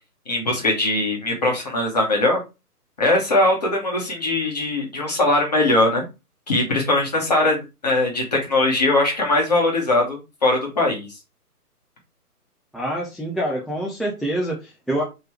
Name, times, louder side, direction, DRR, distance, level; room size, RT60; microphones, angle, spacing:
voice 1, 0.3-2.4 3.0-6.0 6.5-11.1, left 2 dB, 25° left, -1 dB, 1.0 m, -20 dB
voice 2, 12.7-15.0, right 1 dB, ahead, -3 dB, 0.3 m, -26 dB
3.0 x 3.0 x 4.5 m, 0.26 s
hypercardioid pair, 170°, 46 cm